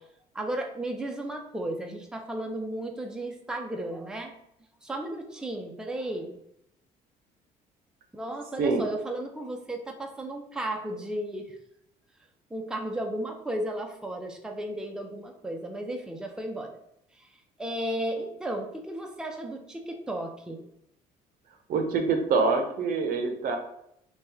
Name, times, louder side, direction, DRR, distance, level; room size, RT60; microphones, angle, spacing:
voice 1, 0.3-4.3 4.8-6.4 8.1-11.5 12.5-16.8 17.2-17.3 17.6-20.6, right 1 dB, 5° right, 2 dB, 0.5 m, -34 dB
voice 2, 21.7-23.6, right 4 dB, 60° right, 5 dB, 0.6 m, -25 dB
2.9 x 2.2 x 3.4 m, 0.77 s
supercardioid pair, 70°, 17 cm